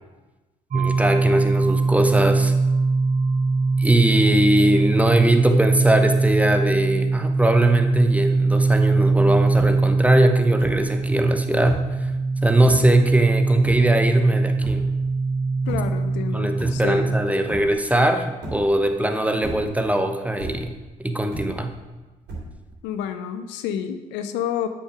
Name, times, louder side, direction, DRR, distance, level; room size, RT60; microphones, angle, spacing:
voice 1, 0.7-2.5 3.8-11.8 12.4-14.9 16.3-20.7 21.0-21.7, right 1 dB, 10° right, 6 dB, 1.0 m, -20 dB
sound 1, 0.7-17.2, right 3 dB, 40° right, 1.2 m, -22 dB
sound 2, 9.1-9.2 9.4-10.0 10.6-11.0 11.5-12.0 12.6-13.0 13.6-14.2 14.6-15.1 15.7-16.1 16.5-17.2 17.5-18.0 18.4-18.9 19.3-20.0 20.4-20.9 21.3-21.9 22.3-22.8, right 1 dB, 65° right, 3.0 m, -35 dB
voice 2, 15.7-17.1 22.8-24.7, left 9 dB, 75° left, 9 dB, 0.6 m, -29 dB
8.6 x 6.2 x 4.8 m, 1.2 s
hypercardioid pair, 45°, 19 cm